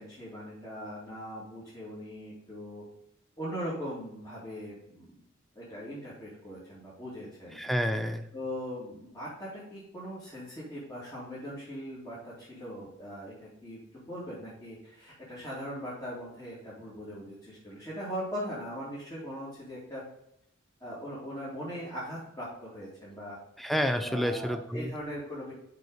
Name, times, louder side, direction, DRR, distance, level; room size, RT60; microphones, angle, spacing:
voice 1, 0.0-2.8 3.4-5.1 5.5-7.6 8.3-20.0 20.8-23.4 24.0-25.5, equal, 20° left, -9 dB, 2.7 m, -40 dB
voice 2, 7.6-8.3 23.6-24.9, equal, ahead, 8 dB, 0.5 m, -29 dB
6.6 x 5.4 x 4.9 m, 0.78 s
head